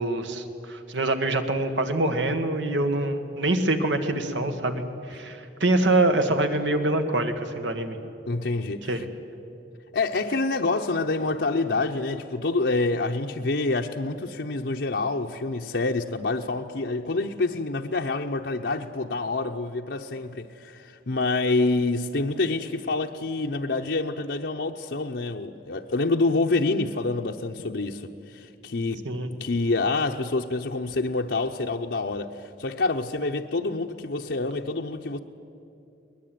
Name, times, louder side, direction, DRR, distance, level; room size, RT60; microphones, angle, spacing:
voice 1, 0.0-8.0 8.9-9.0 29.1-29.3, right 2 dB, 85° right, 1.9 m, -25 dB
voice 2, 8.3-9.0 9.9-29.0 29.4-35.2, left 3 dB, 75° left, 0.8 m, -27 dB
22.0 x 20.0 x 9.3 m
head